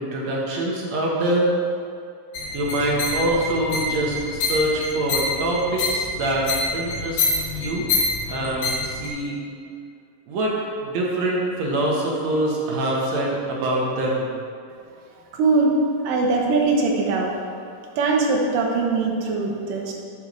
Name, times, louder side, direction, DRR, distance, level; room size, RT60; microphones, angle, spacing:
voice 1, 0.0-1.5 2.5-6.5 6.7-7.2 7.6-7.9 8.3-9.4 10.3-10.5 10.8-14.3, right 1 dB, 60° right, -3 dB, 2.2 m, -24 dB
sound 1, 2.3-9.1, left 3 dB, 65° left, 2.9 m, -26 dB
voice 2, 15.3-15.8 16.0-17.3 18.0-19.9, right 3 dB, 75° right, 0 dB, 2.6 m, -21 dB
8.7 x 4.6 x 6.5 m, 2.3 s
omnidirectional pair, 4.1 m